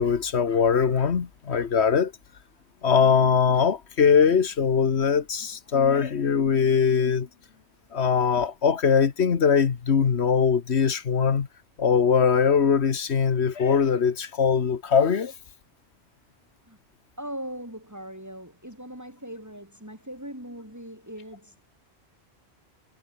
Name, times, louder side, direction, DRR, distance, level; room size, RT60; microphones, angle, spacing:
voice 1, 0.0-2.1 2.8-7.3 7.9-11.5 11.8-15.3, left 6 dB, 85° left, 1.6 m, -21 dB
voice 2, 17.2-21.6, equal, 15° right, 7.9 m, -40 dB
omnidirectional pair, 1.1 m